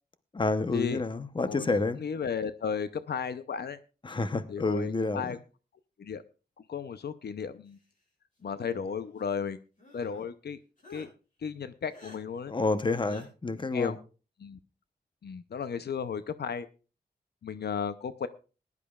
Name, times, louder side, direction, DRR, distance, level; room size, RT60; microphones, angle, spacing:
voice 1, 0.3-2.0 4.0-5.3 12.5-14.0, left 3 dB, 30° left, 11 dB, 0.8 m, -29 dB
voice 2, 1.5-3.8 4.5-5.4 6.0-6.2 6.7-7.8 8.4-9.6 9.9-10.6 10.9-11.1 11.4-12.5 13.7-14.0 14.4-14.6 15.2-16.7 17.4-18.3, left 6 dB, 75° left, 12 dB, 0.6 m, -34 dB
sound 1, 8.4-9.2 9.8-10.3 10.8-11.1 11.9-12.2 13.0-13.3, left 2 dB, 50° left, 6.7 m, -51 dB
20.5 x 11.0 x 2.4 m, 0.34 s
wide cardioid pair, 120°, 17 cm